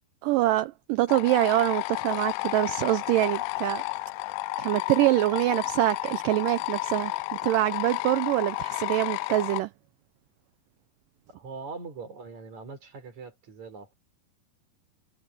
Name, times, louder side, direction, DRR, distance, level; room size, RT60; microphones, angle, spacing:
voice 1, 0.2-3.8 4.6-9.7, right 16 dB, 85° right, 1.9 m, -25 dB
sound 1, 1.1-9.6, left 22 dB, 85° left, 2.0 m, -32 dB
voice 2, 11.3-13.9, right 4 dB, 45° right, 5.9 m, -42 dB
omnidirectional pair, 4.6 m